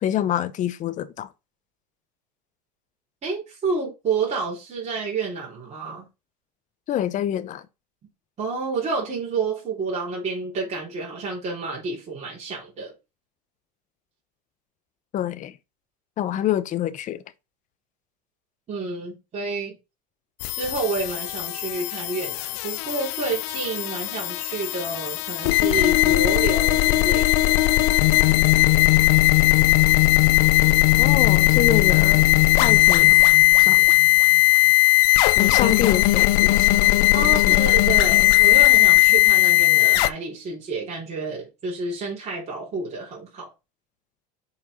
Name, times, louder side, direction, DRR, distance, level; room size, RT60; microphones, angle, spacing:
voice 1, 0.0-1.3 6.9-7.6 15.1-15.6 16.2-17.2 31.0-32.3 32.6-33.2 33.6-33.9 35.4-36.9 37.4-37.6, left 11 dB, 40° left, 0.7 m, -26 dB
voice 2, 3.2-6.1 8.4-12.9 18.7-19.7 20.5-27.6 35.5-35.8 37.1-43.5, right 4 dB, 35° right, 3.3 m, -29 dB
sound 1, 20.4-40.1, left 18 dB, 70° left, 0.5 m, -18 dB
5.7 x 4.4 x 4.9 m
supercardioid pair, 110°, 21 cm